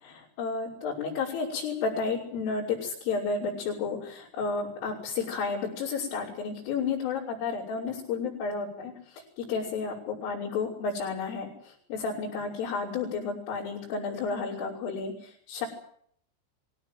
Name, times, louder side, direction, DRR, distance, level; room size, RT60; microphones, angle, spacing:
voice 1, 0.0-15.7, left 5 dB, 75° left, -6 dB, 8.4 m, -32 dB
24.0 x 17.0 x 9.3 m, 0.63 s
omnidirectional pair, 5.8 m